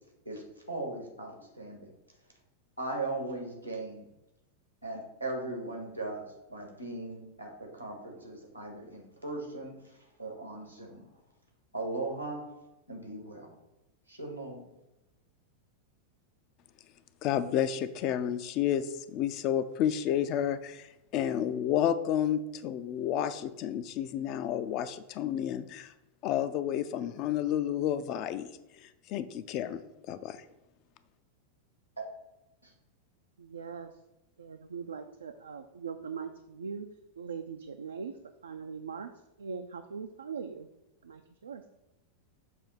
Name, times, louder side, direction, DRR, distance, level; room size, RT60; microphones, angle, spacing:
voice 1, 0.2-1.9 2.8-4.1 4.8-9.7 10.2-11.0 11.7-12.4 12.9-13.5 14.1-14.6 32.6-32.7, right 2 dB, 90° right, 1 dB, 1.4 m, -38 dB
voice 2, 17.2-25.9 26.2-28.5 28.8-29.8 30.1-30.4, left 10 dB, 40° left, 13 dB, 0.4 m, -31 dB
voice 3, 33.4-33.9 34.4-36.9 37.2-38.1 38.4-39.1 39.4-40.7 41.0-41.6, right 6 dB, 70° right, 7 dB, 0.3 m, -40 dB
6.5 x 2.7 x 5.5 m, 0.95 s
figure-of-eight pair, 90°, 0 cm